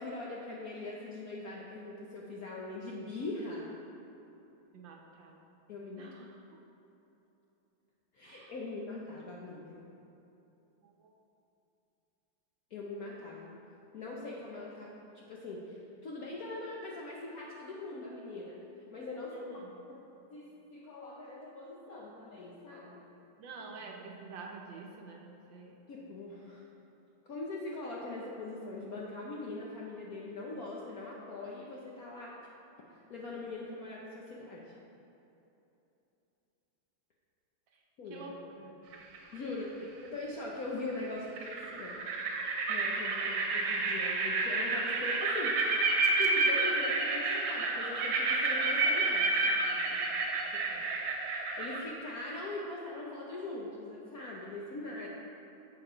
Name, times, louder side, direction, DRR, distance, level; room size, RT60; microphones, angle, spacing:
voice 1, 0.0-3.7 5.7-6.2 8.1-9.8 12.7-13.5 13.9-18.6 18.9-20.0 20.3-23.1 25.9-26.6 27.2-32.3 32.9-34.6 38.0-38.3 38.6-38.7 39.0-42.0 42.7-45.7 46.2-50.1 50.5-50.8 51.6-55.1, left 2 dB, 65° left, -4 dB, 0.9 m, -42 dB
voice 2, 4.7-5.4 6.0-6.4 8.2-8.5 10.8-11.1 19.3-19.7 23.4-25.9 38.1-38.7, right 4 dB, 70° right, 1 dB, 1.3 m, -48 dB
sound 1, 38.9-39.4 40.9-41.0 41.4-51.8, right 3 dB, 85° right, 1.7 m, -30 dB
7.0 x 6.8 x 4.9 m, 3.0 s
omnidirectional pair, 2.4 m